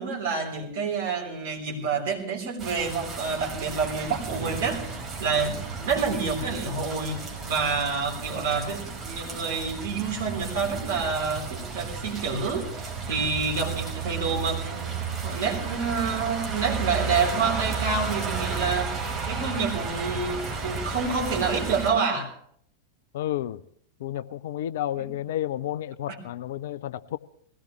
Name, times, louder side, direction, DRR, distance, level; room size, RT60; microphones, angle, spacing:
voice 1, 0.0-14.9 15.2-18.9 19.3-22.3 25.0-25.1 26.1-26.2, right 5 dB, 55° right, 3.7 m, -28 dB
sound 1, 2.6-21.9, right 5 dB, 20° right, 4.7 m, -33 dB
voice 2, 23.1-23.6 24.0-27.2, left 12 dB, 55° left, 0.5 m, -31 dB
20.5 x 17.0 x 3.1 m
figure-of-eight pair, 90°, 0 cm